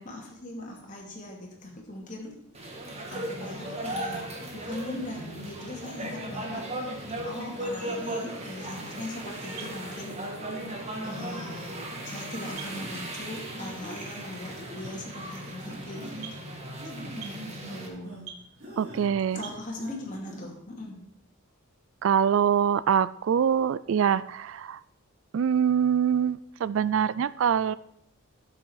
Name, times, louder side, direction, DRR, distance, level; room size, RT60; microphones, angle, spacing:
voice 1, 0.0-2.3 2.6-6.6 7.2-10.2 11.0-11.8 12.0-16.6 17.0-17.4 17.7-18.1 19.3-21.0, left 1 dB, 35° left, -1 dB, 2.7 m, -40 dB
sound 1, 2.5-17.9, right 1 dB, 30° right, 1.8 m, -37 dB
sound 2, 4.1-4.3 4.9-5.5 6.0-6.5 7.0-7.3 7.8-8.1 8.6-9.1 9.6-9.7 10.0-10.3 10.6-10.7 11.1-11.5 11.8-12.0 12.7-12.9 13.5-14.0 14.5-14.9 15.6-16.3 16.8-18.3 18.6-19.0 19.3-20.0 20.2-20.4, right 1 dB, 50° right, 3.7 m, -44 dB
sound 3, 9.4-20.2, right 5 dB, 80° right, 1.5 m, -50 dB
voice 2, 18.8-19.4 22.0-24.8 25.3-27.7, right 8 dB, 65° right, 18 dB, 0.3 m, -24 dB
12.0 x 7.7 x 4.8 m, 0.75 s
head